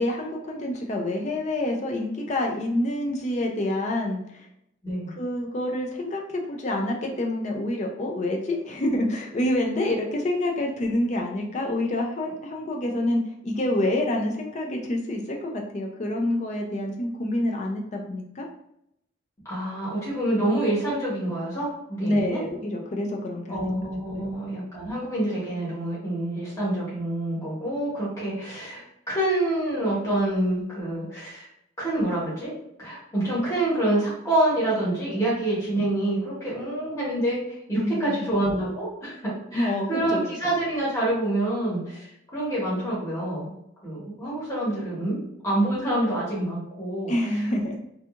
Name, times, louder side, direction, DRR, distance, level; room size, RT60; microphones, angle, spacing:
voice 1, 0.0-4.5 5.1-18.5 22.0-23.7 24.1-24.3 37.8-38.1 39.5-40.3 47.1-47.8, left 1 dB, 35° left, 1 dB, 0.4 m, -27 dB
voice 2, 19.4-22.4 23.5-31.5 31.8-32.5 32.8-43.5 43.8-45.2 45.4-47.1, right 1 dB, 15° left, -8 dB, 0.9 m, -27 dB
2.7 x 2.4 x 2.4 m, 0.77 s
head